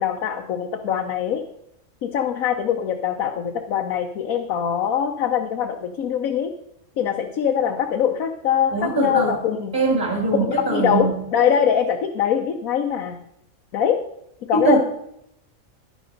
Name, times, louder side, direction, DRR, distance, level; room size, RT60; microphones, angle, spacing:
voice 1, 0.0-1.4 2.0-6.5 7.0-9.7 10.4-13.2 13.7-14.0 14.5-14.8, left 8 dB, 75° left, 4 dB, 1.2 m, -23 dB
voice 2, 8.7-9.4 9.7-11.2 14.5-14.8, right 2 dB, 15° right, 1 dB, 1.7 m, -21 dB
11.0 x 10.0 x 3.9 m, 0.78 s
omnidirectional pair, 1.5 m